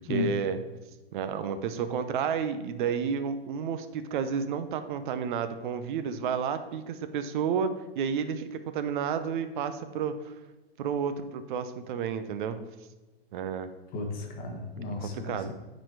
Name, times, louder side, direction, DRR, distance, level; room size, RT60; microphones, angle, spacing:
voice 1, 0.1-0.6 1.1-10.3 10.8-12.6 13.3-13.7 14.9-15.5, right 7 dB, 50° right, 10 dB, 0.8 m, -31 dB
voice 2, 13.9-15.5, left 3 dB, 25° left, 2 dB, 1.5 m, -34 dB
9.3 x 4.3 x 4.7 m, 1.1 s
hypercardioid pair, 120°, 32 cm